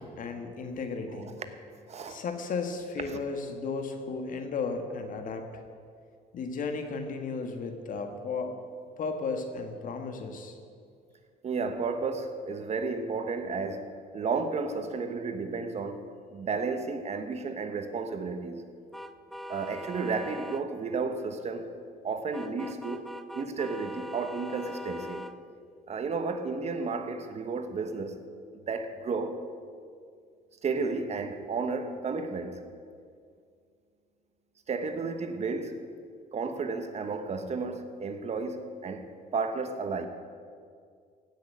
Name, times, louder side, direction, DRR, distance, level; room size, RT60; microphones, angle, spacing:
voice 1, 0.2-1.3 2.1-5.5 6.3-8.6 9.0-10.6, left 4 dB, 50° left, 1.7 m, -34 dB
voice 2, 1.9-2.2 3.0-3.2 11.4-16.1 16.3-18.6 19.5-21.7 22.0-25.2 25.9-28.2 28.5-29.4 30.6-32.6 34.7-35.8 36.3-40.1, right 4 dB, 40° right, 1.2 m, -33 dB
sound 1, 18.9-20.6 22.3-25.3, left 1 dB, ahead, 0.6 m, -41 dB
16.0 x 6.5 x 8.5 m
cardioid pair, 110°, 17 cm